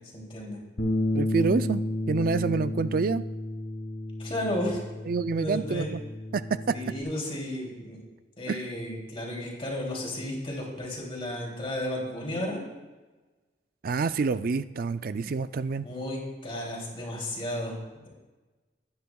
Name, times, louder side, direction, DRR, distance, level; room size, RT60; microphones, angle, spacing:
voice 1, 0.1-0.6 4.2-4.8 5.3-5.9 6.7-8.0 8.4-12.6 15.8-17.8, left 1 dB, 30° left, -2 dB, 2.9 m, -33 dB
Bass guitar, 0.8-7.0, left 1 dB, 75° left, 1.5 m, -32 dB
voice 2, 1.1-3.2 5.1-6.0 6.3-6.4 8.5-8.6 13.8-15.9, right 4 dB, 50° right, 13 dB, 0.4 m, -27 dB
20.0 x 9.5 x 2.3 m, 1.2 s
head